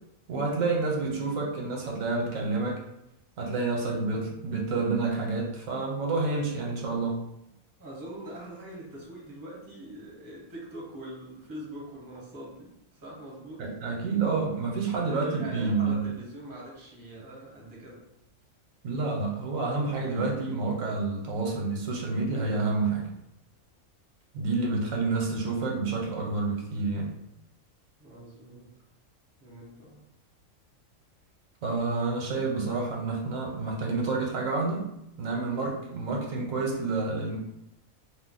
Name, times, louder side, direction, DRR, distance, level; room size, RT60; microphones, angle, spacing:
voice 1, 0.3-2.8 3.4-7.2 13.6-16.0 18.8-23.1 24.3-27.1 31.6-34.9 35.2-37.4, right 3 dB, 80° right, -1 dB, 1.1 m, -29 dB
voice 2, 7.8-12.7 13.0-13.6 15.2-18.0 28.0-28.7 29.4-30.0, right 1 dB, 20° right, -4 dB, 0.6 m, -43 dB
2.4 x 2.0 x 3.8 m, 0.83 s
omnidirectional pair, 1.4 m